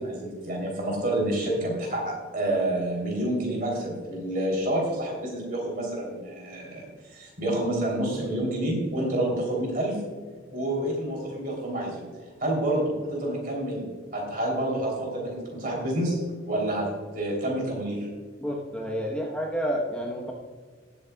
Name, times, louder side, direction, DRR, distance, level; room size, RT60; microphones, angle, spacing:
voice 1, 0.0-10.0 10.5-12.1 12.4-13.8 14.1-18.1, right 1 dB, 50° right, -1 dB, 3.3 m, -28 dB
voice 2, 18.4-20.3, equal, 5° left, -2 dB, 1.1 m, -30 dB
19.0 x 8.2 x 2.3 m, 1.5 s
head